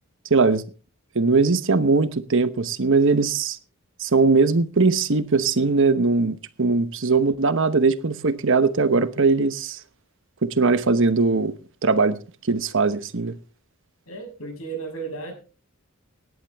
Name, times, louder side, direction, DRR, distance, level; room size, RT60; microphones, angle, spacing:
voice 1, 0.3-0.6 1.1-3.6 4.0-9.8 10.4-11.5 11.8-12.2 12.5-13.3, right 4 dB, 60° right, 1.1 m, -20 dB
voice 2, 14.1-15.3, right 4 dB, 75° left, 6.5 m, -34 dB
18.0 x 11.0 x 3.5 m
head